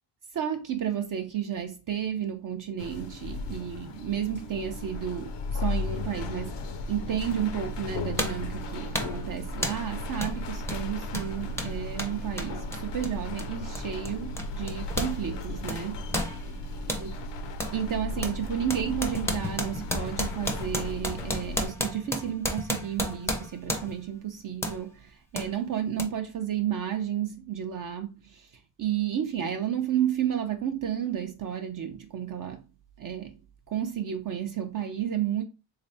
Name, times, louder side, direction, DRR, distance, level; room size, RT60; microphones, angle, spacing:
voice 1, 0.3-16.3 17.0-17.1 17.7-32.7 33.0-33.4 33.7-35.4, right 9 dB, 45° right, 0.5 m, -32 dB
sound 1, 2.8-21.7, left 2 dB, 60° left, 0.7 m, -35 dB
sound 2, 7.3-7.4 8.2-8.5 8.9-9.2 9.6-9.9 10.2-10.4 10.6-15.2 15.4-17.1 17.6-17.8 18.2-24.1 24.6-24.8 25.4-25.5 26.0-26.1, left 1 dB, 5° left, 0.5 m, -33 dB
3.4 x 3.3 x 2.6 m
cardioid pair, 95°, 48 cm